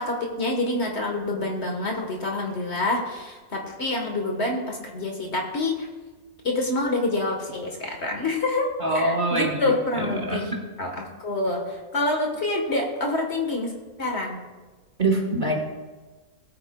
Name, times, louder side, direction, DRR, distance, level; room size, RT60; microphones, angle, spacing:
voice 1, 0.0-5.9 6.4-8.7 8.9-10.5 10.8-13.7 14.0-14.4, left 2 dB, 45° left, 2 dB, 1.5 m, -27 dB
voice 2, 8.8-9.7 10.3-10.6 15.0-15.6, right 2 dB, 35° right, -1 dB, 1.4 m, -24 dB
19.5 x 8.6 x 2.3 m, 1.3 s
omnidirectional pair, 1.6 m